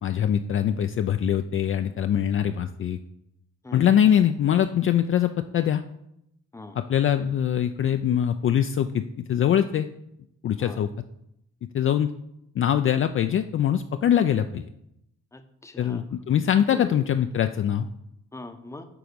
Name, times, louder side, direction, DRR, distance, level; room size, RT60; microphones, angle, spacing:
voice 1, 0.0-3.0 3.7-5.8 6.7-9.0 9.3-9.9 10.4-10.9 11.7-12.1 12.6-14.7 15.8-17.9, left 9 dB, 45° left, 8 dB, 0.4 m, -23 dB
voice 2, 15.3-16.0 16.7-17.0 18.3-18.9, left 2 dB, 10° left, 8 dB, 0.7 m, -41 dB
9.4 x 3.8 x 5.2 m, 0.80 s
cardioid pair, 90°, 30 cm